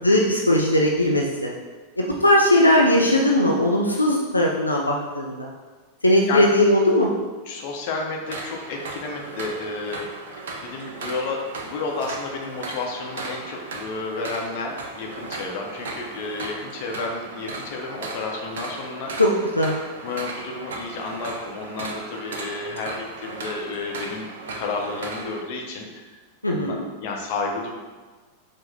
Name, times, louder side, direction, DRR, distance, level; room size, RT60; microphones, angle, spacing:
voice 1, 0.0-1.5 2.0-5.5 6.0-7.1 19.2-19.3 19.6-19.8 26.4-26.9, left 1 dB, 85° left, -2 dB, 0.4 m, -19 dB
voice 2, 7.5-10.1 10.6-19.1 20.0-24.3 24.5-25.9 26.4-27.7, left 3 dB, 45° left, 0 dB, 0.7 m, -31 dB
sound 1, 8.2-25.4, right 3 dB, 60° right, 0.5 m, -36 dB
4.8 x 2.1 x 3.9 m, 1.4 s
figure-of-eight pair, 90°, 0 cm